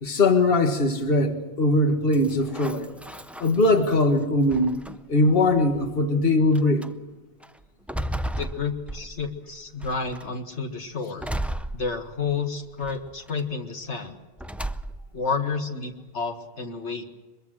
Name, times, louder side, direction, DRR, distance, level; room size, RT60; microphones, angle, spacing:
voice 1, 0.0-2.9 3.4-4.7 5.1-6.9, left 2 dB, 55° left, 1.9 m, -21 dB
sound 1, 2.1-4.0 4.5-5.2 6.0-6.1 6.5-6.9 7.4-9.4 9.8-10.3 11.2-12.4 12.8-13.4 14.4-15.2, right 1 dB, ahead, 0.4 m, -34 dB
voice 2, 8.4-11.3 11.7-14.2 15.1-17.0, left 5 dB, 80° left, 2.1 m, -30 dB
23.5 x 22.5 x 6.4 m
omnidirectional pair, 1.2 m